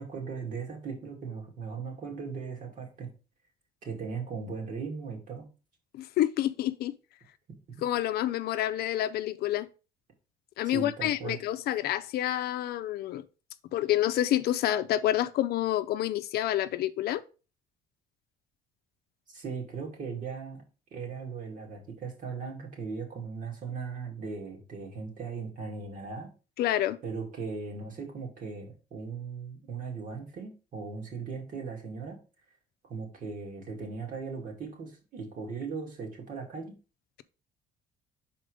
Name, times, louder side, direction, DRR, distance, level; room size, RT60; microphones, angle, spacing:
voice 1, 0.0-3.1 3.8-5.5 7.5-7.6 10.6-11.4 19.3-20.6 20.9-26.3 27.0-32.2 32.8-36.7, right 5 dB, 50° right, 2.4 m, -38 dB
voice 2, 6.0-6.9 7.8-9.7 10.6-13.2 13.7-17.2 26.6-27.0, left 13 dB, 70° left, 0.5 m, -28 dB
5.2 x 4.3 x 4.9 m
cardioid pair, 110°, 17 cm